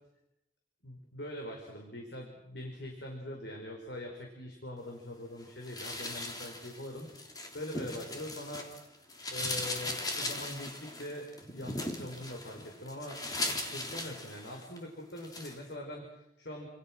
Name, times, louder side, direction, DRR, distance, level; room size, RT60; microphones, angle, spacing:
voice 1, 0.8-8.9 9.3-13.2 13.7-16.7, left 1 dB, 65° left, 1 dB, 5.2 m, -43 dB
sound 1, 5.6-8.8 9.1-14.8 15.2-15.6, left 2 dB, 20° left, 3.3 m, -38 dB
29.5 x 27.5 x 6.3 m, 0.88 s
head